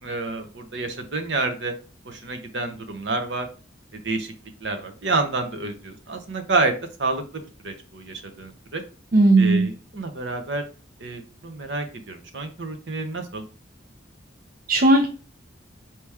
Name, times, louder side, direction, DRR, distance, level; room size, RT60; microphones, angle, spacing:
voice 1, 0.0-1.7 2.0-3.5 4.0-4.3 4.6-6.7 7.0-8.8 9.4-10.6 11.0-13.4, right 3 dB, 65° right, 6 dB, 0.8 m, -28 dB
voice 2, 9.1-9.7 14.7-15.1, right 2 dB, 45° right, 2 dB, 0.5 m, -16 dB
4.6 x 3.0 x 3.5 m, 0.35 s
head